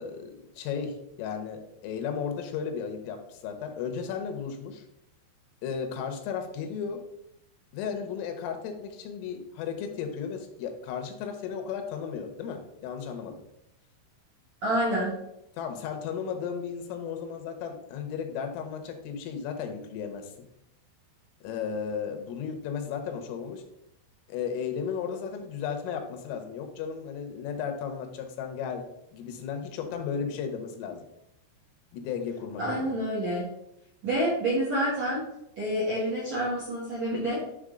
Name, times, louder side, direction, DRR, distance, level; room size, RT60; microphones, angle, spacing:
voice 1, 0.0-4.8 5.6-7.0 7.7-13.4 15.6-20.3 21.4-23.6 24.3-28.9 29.1-31.0 31.9-33.0, left 7 dB, 90° left, 6 dB, 3.5 m, -34 dB
voice 2, 14.6-15.2 32.6-33.5 34.0-35.2 35.6-37.4, right 1 dB, 65° right, -8 dB, 1.7 m, -28 dB
10.5 x 3.8 x 3.7 m, 0.83 s
omnidirectional pair, 5.8 m